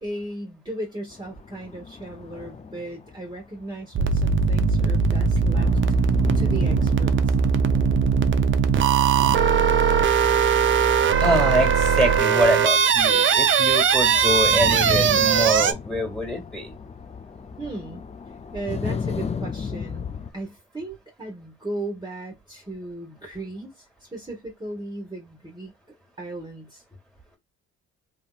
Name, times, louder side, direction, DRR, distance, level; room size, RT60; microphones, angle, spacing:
voice 1, 0.0-5.8 6.3-7.4 17.6-18.0 18.5-20.1 20.3-25.7 26.2-26.8, right 1 dB, 15° right, 1.5 m, -36 dB
sound 1, 1.1-3.9 4.3-20.3, left 6 dB, 20° left, 0.4 m, -35 dB
sound 2, 3.9-15.7, right 6 dB, 40° right, 0.6 m, -20 dB
voice 2, 11.2-16.7, equal, ahead, 2.0 m, -25 dB
3.4 x 2.8 x 2.3 m
cardioid pair, 90°, 30 cm